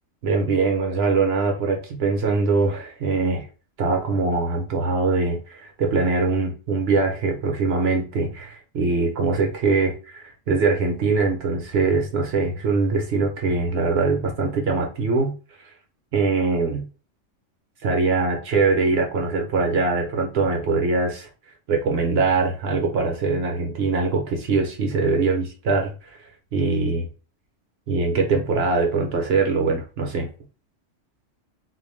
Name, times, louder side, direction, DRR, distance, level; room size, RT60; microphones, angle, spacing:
voice 1, 0.2-3.5 3.8-15.3 16.1-16.9 17.8-21.3 21.7-26.2 26.5-27.1 27.9-30.3, right 4 dB, 60° right, 2 dB, 0.8 m, -22 dB
2.4 x 2.1 x 3.1 m, 0.35 s
omnidirectional pair, 1.3 m